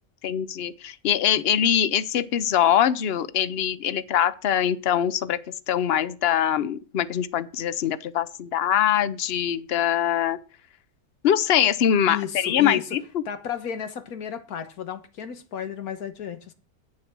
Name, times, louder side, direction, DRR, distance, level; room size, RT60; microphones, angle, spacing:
voice 1, 0.2-5.4 5.7-10.4 11.2-13.0, left 9 dB, 55° left, 0.8 m, -23 dB
voice 2, 12.1-13.0 13.2-16.5, left 8 dB, 85° left, 1.7 m, -33 dB
8.7 x 7.2 x 6.1 m
omnidirectional pair, 1.5 m